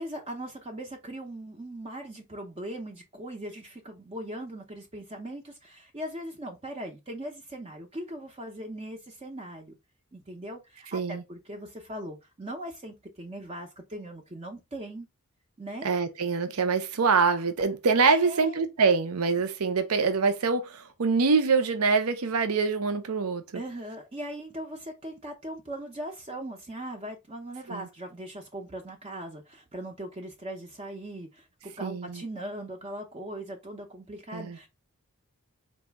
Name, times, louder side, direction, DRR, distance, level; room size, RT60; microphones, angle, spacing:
voice 1, 0.0-9.8 10.1-15.1 15.6-15.9 18.1-18.6 23.5-34.7, right 1 dB, 25° right, 0.6 m, -39 dB
voice 2, 10.9-11.2 15.8-23.6 27.7-27.9 31.8-32.2 34.3-34.6, right 4 dB, 70° right, 0.6 m, -25 dB
4.0 x 2.6 x 3.3 m
head